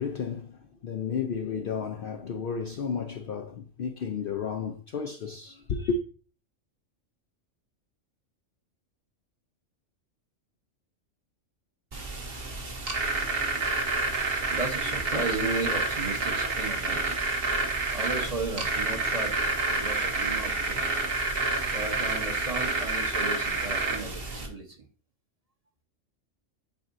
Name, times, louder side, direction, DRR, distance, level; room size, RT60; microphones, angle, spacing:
voice 1, 0.0-6.0, left 5 dB, 60° left, 0.6 m, -32 dB
sound 1, 11.9-24.5, right 3 dB, 50° right, 1.4 m, -29 dB
voice 2, 13.2-17.2 17.9-20.8 21.7-24.8, right 3 dB, 30° right, 1.0 m, -35 dB
9.1 x 4.2 x 2.6 m
omnidirectional pair, 1.3 m